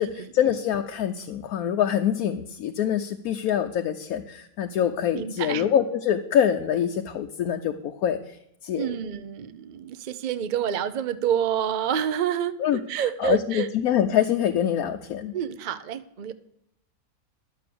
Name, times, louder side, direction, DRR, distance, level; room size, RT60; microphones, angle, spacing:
voice 1, 0.0-8.2 8.6-8.9 12.6-12.8 13.2-15.3, left 9 dB, 85° left, 5 dB, 1.1 m, -25 dB
voice 2, 5.1-5.6 8.7-13.7 15.3-16.3, right 9 dB, 55° right, 12 dB, 0.5 m, -28 dB
11.5 x 6.9 x 6.8 m, 0.76 s
omnidirectional pair, 1.5 m